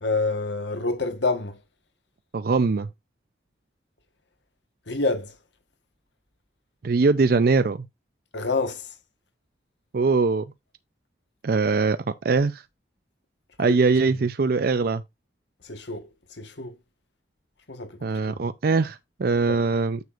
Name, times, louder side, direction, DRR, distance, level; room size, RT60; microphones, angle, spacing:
voice 1, 0.0-1.6 4.9-5.4 8.3-8.9 13.6-13.8 15.6-16.8 17.7-18.4 19.5-19.6, left 3 dB, 80° left, 1.4 m, -28 dB
voice 2, 2.3-2.9 6.8-7.8 9.9-10.4 11.4-12.0 12.2-12.6 13.6-15.0 18.0-20.0, right 4 dB, 55° right, 0.5 m, -22 dB
9.5 x 6.7 x 2.5 m
head